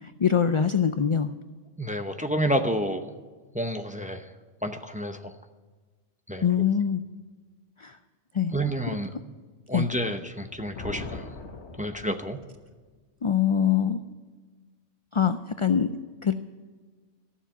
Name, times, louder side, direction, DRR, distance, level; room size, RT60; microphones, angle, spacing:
voice 1, 0.0-1.3 6.4-7.0 7.8-8.0 8.3-8.5 9.7-9.9 13.2-14.0 15.1-15.9 16.2-16.3, left 8 dB, 50° left, 10 dB, 0.3 m, -23 dB
voice 2, 1.8-3.1 3.5-4.3 4.6-5.3 6.3-6.4 8.5-9.1 9.7-11.3 11.8-12.4, equal, 10° right, 6 dB, 0.6 m, -29 dB
Thunder, 10.3-12.7, left 3 dB, 85° left, 1.5 m, -41 dB
14.0 x 7.3 x 9.0 m, 1.4 s
omnidirectional pair, 1.1 m